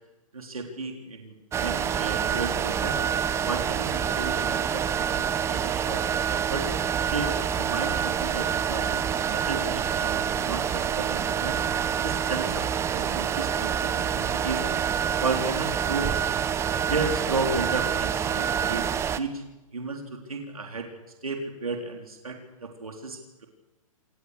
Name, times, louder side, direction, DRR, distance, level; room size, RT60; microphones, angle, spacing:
voice 1, 0.3-3.0 3.4-6.7 7.1-14.6 15.2-16.1 16.9-19.4 19.7-20.9 21.2-23.5, right 3 dB, 80° right, 3 dB, 3.8 m, -33 dB
sound 1, 1.5-19.2, right 8 dB, 15° right, 0.9 m, -27 dB
26.5 x 19.5 x 6.7 m, 1.0 s
figure-of-eight pair, 120°, 18 cm